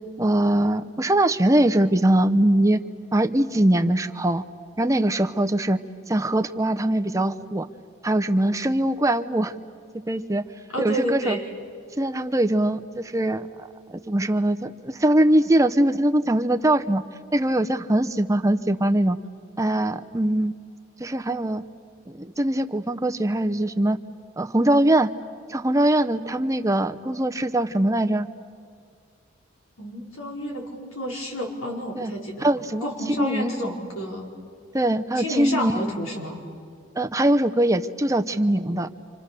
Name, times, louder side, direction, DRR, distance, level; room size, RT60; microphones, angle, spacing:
voice 1, 0.2-2.8 3.1-4.4 4.8-5.8 6.1-7.7 8.0-9.5 10.1-10.4 10.8-11.4 12.0-13.5 13.9-17.0 17.3-19.2 19.6-20.5 21.0-21.6 22.1-24.0 24.4-25.1 25.5-28.3 32.0-32.1 32.4-32.9 33.2-33.5 34.7-35.7 37.0-38.9, right 1 dB, 15° right, 8 dB, 0.7 m, -22 dB
voice 2, 10.7-11.5 29.8-34.3 35.1-36.4, equal, 90° left, -1 dB, 4.9 m, -30 dB
30.0 x 26.5 x 6.8 m, 2.3 s
head